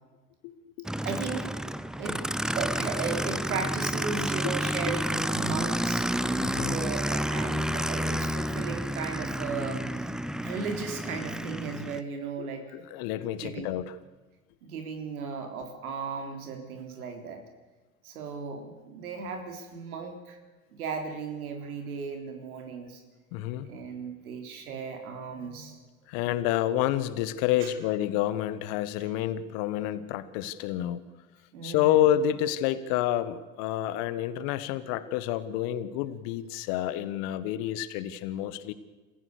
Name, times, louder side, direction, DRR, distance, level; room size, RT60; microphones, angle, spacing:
voice 1, 0.4-0.9 4.4-4.5 6.4-6.8 12.4-14.0 23.3-23.7 26.1-31.0 31.6-38.7, left 12 dB, 60° left, 14 dB, 1.6 m, -29 dB
Aircraft, 0.8-12.0, equal, ahead, 0.7 m, -30 dB
voice 2, 1.0-1.5 2.0-6.1 6.6-10.1 10.4-12.7 13.4-13.8 14.6-17.4 18.0-20.4 20.7-23.0 23.6-25.8 27.6-27.7 31.5-32.0, right 5 dB, 80° right, 5 dB, 3.7 m, -36 dB
28.0 x 15.0 x 6.7 m, 1.2 s
hypercardioid pair, 80°, 43 cm